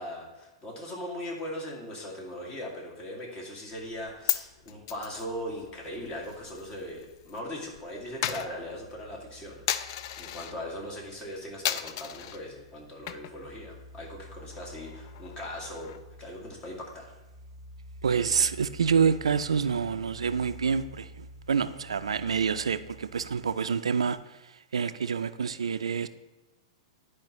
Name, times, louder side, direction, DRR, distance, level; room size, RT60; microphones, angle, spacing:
voice 1, 0.0-17.1, left 1 dB, 30° left, 2.0 m, -39 dB
sound 1, 3.8-7.5 7.8-23.6, left 1 dB, 15° left, 1.9 m, -50 dB
Coin (dropping), 3.9-7.4 7.7-10.6 11.0-11.3 11.6-12.4 12.9-13.5 13.8-13.9 14.3-16.2, left 11 dB, 50° left, 0.4 m, -35 dB
voice 2, 18.0-26.1, right 6 dB, 85° right, 0.3 m, -27 dB
11.0 x 4.8 x 3.0 m
hypercardioid pair, 115°, 3 cm